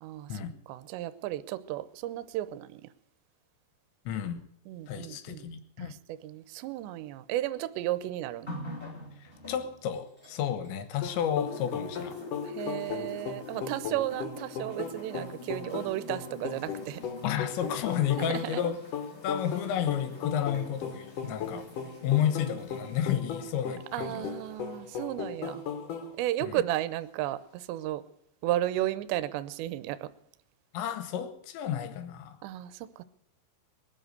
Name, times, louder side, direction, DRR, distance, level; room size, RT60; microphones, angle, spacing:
voice 1, 0.0-2.9 4.7-5.5 5.8-8.5 12.4-17.0 18.2-18.7 23.9-25.6 26.2-28.0 28.4-30.1 32.4-33.0, right 14 dB, 80° right, 2.6 m, -34 dB
voice 2, 4.1-4.5 4.9-6.0 9.2-12.2 17.2-18.8 19.2-21.7 22.0-24.3 26.4-26.6 30.7-32.4, left 9 dB, 75° left, 3.2 m, -31 dB
sound 1, 8.5-10.8 11.1-25.9 26.8-26.9, left 2 dB, 25° left, 1.3 m, -46 dB
sound 2, 11.0-26.1, left 6 dB, 55° left, 2.5 m, -37 dB
21.5 x 7.7 x 8.0 m
omnidirectional pair, 5.8 m